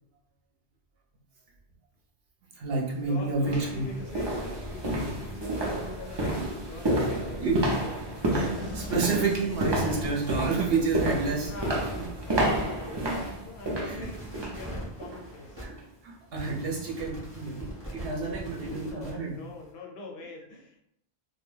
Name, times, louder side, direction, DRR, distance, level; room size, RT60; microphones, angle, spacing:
voice 1, 2.5-3.9 7.4-7.6 8.3-11.5 11.9-12.1 13.9-14.1 15.6-15.7 16.0-19.4, right 4 dB, 65° right, -3 dB, 0.8 m, -29 dB
sound 1, 2.7-2.8 3.4-14.6 15.0-15.3 15.7-15.8, right 1 dB, 40° right, 0.3 m, -30 dB
voice 2, 3.1-8.1 11.5-11.9 12.3-15.6 18.2-18.3 18.7-20.8, left 2 dB, 75° left, 0 dB, 0.8 m, -43 dB
sound 2, 3.5-5.3 5.7-19.7, right 1 dB, 25° right, 0.8 m, -45 dB
sound 3, 8.4-11.1, left 2 dB, 40° left, 0.5 m, -42 dB
2.3 x 2.2 x 3.1 m, 0.75 s
omnidirectional pair, 1.1 m